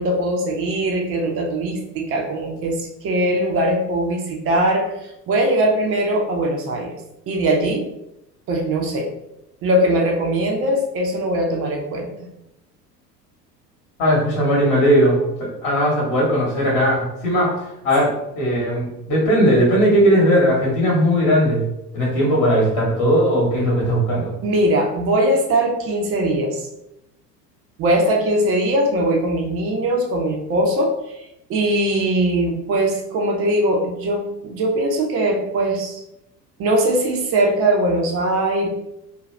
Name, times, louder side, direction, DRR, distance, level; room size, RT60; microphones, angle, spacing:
voice 1, 0.0-7.0 7.3-7.9 8.5-9.1 9.6-12.3 24.4-26.7 27.8-31.2 31.5-36.0 36.6-38.7, right 1 dB, 30° right, 1 dB, 0.6 m, -21 dB
voice 2, 14.0-17.5 17.8-21.6 21.9-24.3, equal, 40° left, -3 dB, 1.1 m, -18 dB
2.6 x 2.3 x 3.1 m, 0.86 s
figure-of-eight pair, 75°, 49 cm